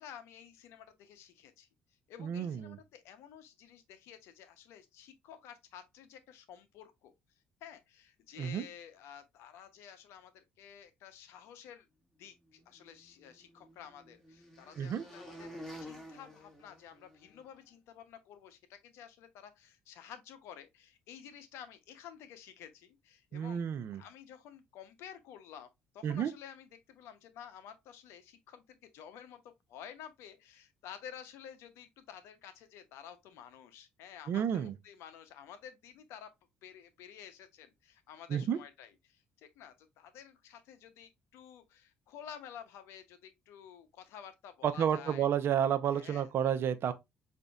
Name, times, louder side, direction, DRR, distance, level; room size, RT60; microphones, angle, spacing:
voice 1, 0.0-1.7 2.1-7.1 7.6-11.9 12.2-15.5 15.8-23.7 24.0-25.7 25.9-29.4 29.7-36.3 36.6-45.3 45.9-46.3, left 9 dB, 75° left, 0.6 m, -52 dB
voice 2, 2.2-2.8 8.4-8.6 14.8-15.0 23.3-24.0 26.0-26.3 34.3-34.7 38.3-38.6 44.6-46.9, right 9 dB, 60° right, 0.5 m, -31 dB
sound 1, 12.8-17.4, equal, 5° left, 1.7 m, -50 dB
5.0 x 2.6 x 2.3 m
supercardioid pair, 65°, 5 cm